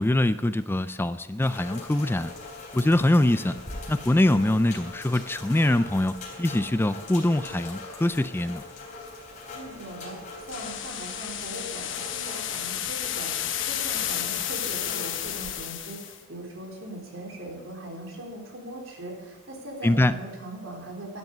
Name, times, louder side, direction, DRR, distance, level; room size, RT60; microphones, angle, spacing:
voice 1, 0.0-2.3 2.7-3.6 3.9-6.1 6.4-8.6 19.8-20.2, left 1 dB, 10° left, 13 dB, 0.3 m, -23 dB
sound 1, 1.4-15.6, left 2 dB, 40° left, 3.6 m, -42 dB
voice 2, 9.6-10.2 10.5-21.2, right 1 dB, 85° right, 0 dB, 3.7 m, -40 dB
sound 2, 10.5-16.2, left 10 dB, 70° left, 1.1 m, -32 dB
12.0 x 10.5 x 6.7 m, 1.4 s
head